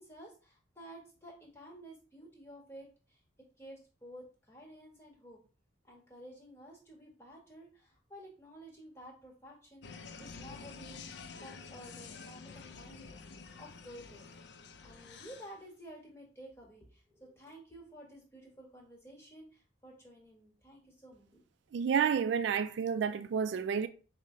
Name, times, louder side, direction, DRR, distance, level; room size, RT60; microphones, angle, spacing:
voice 1, 0.0-3.2 3.6-5.4 5.8-11.0 11.4-21.4, equal, 15° left, 1.3 m, -53 dB
sound 1, 9.8-15.6, left 5 dB, 65° left, 0.4 m, -49 dB
voice 2, 21.7-23.9, right 7 dB, 70° right, 0.3 m, -30 dB
5.3 x 2.1 x 3.7 m
head